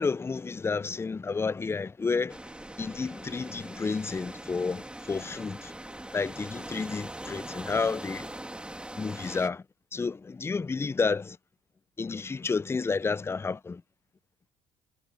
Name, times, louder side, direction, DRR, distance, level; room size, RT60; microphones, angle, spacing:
voice 1, 0.0-2.4 2.8-5.7 6.1-8.3 9.0-9.6 9.9-11.4 12.0-13.8, left 4 dB, 15° left, 0.4 m, -30 dB
sound 1, 2.3-9.5, right 1 dB, 5° right, 1.9 m, -42 dB
cardioid pair, 110°, 17 cm